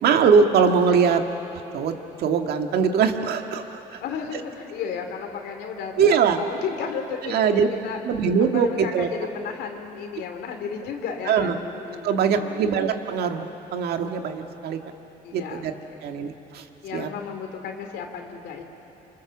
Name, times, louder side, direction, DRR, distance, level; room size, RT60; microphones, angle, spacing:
voice 1, 0.0-1.2 1.7-1.9 2.2-4.0 6.0-6.4 7.3-7.7 8.0-9.1 11.3-11.5 12.0-13.5 13.7-14.8 15.3-15.7 16.0-16.6 16.9-17.1, right 6 dB, 70° right, 5 dB, 1.8 m, -21 dB
voice 2, 4.0-8.0 8.5-12.6 15.2-16.3 16.8-18.6, left 6 dB, 75° left, 4 dB, 2.7 m, -34 dB
27.5 x 25.5 x 7.3 m, 3.0 s
cardioid pair, 110°, 17 cm